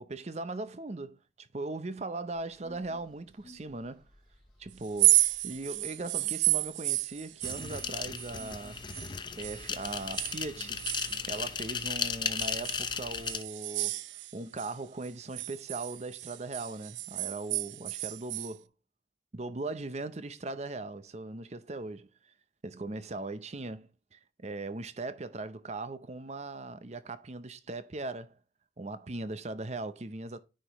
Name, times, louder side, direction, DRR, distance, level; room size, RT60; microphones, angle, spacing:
voice 1, 0.0-4.0 4.6-8.8 9.4-10.9 11.2-14.0 14.3-18.7 19.3-22.1 22.6-28.4 28.8-30.4, right 2 dB, 40° right, 0.7 m, -39 dB
sound 1, 2.4-11.7, equal, 5° left, 3.9 m, -58 dB
sound 2, 4.8-9.1 9.4-11.9 12.4-14.7 15.0-18.5, right 18 dB, 80° right, 0.4 m, -31 dB
sound 3, 7.4-13.4, left 6 dB, 25° left, 0.6 m, -35 dB
9.9 x 5.2 x 3.0 m
head